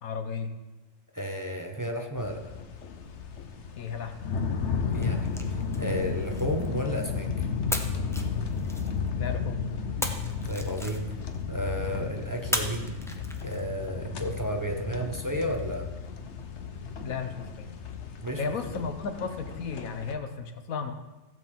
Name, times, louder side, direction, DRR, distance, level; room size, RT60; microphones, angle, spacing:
voice 1, 0.0-0.5 3.8-4.1 9.1-9.6 17.0-17.7 18.4-20.9, left 5 dB, 85° left, 7 dB, 1.5 m, -34 dB
voice 2, 1.1-2.4 4.9-7.3 10.5-11.0 11.5-12.9 13.4-15.9 18.2-18.4, equal, 15° right, 2 dB, 1.0 m, -32 dB
sound 1, 2.2-20.1, left 5 dB, 60° left, 1.2 m, -33 dB
sound 2, 4.9-7.2 7.7-9.3 10.0-11.4 12.5-13.9, equal, 5° left, 0.7 m, -36 dB
15.5 x 5.2 x 7.4 m, 1.1 s
omnidirectional pair, 1.4 m